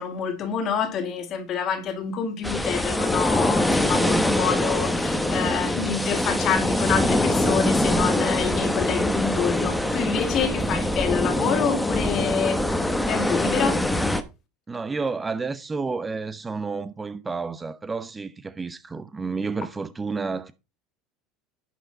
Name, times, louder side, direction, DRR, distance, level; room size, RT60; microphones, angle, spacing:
voice 1, 0.0-14.0, left 6 dB, 45° left, 2.3 m, -27 dB
sound 1, 2.4-14.2, left 1 dB, 5° left, 1.2 m, -23 dB
voice 2, 10.5-11.0 14.7-20.5, right 4 dB, 20° right, 0.7 m, -31 dB
11.0 x 5.8 x 4.0 m
supercardioid pair, 105°, 0 cm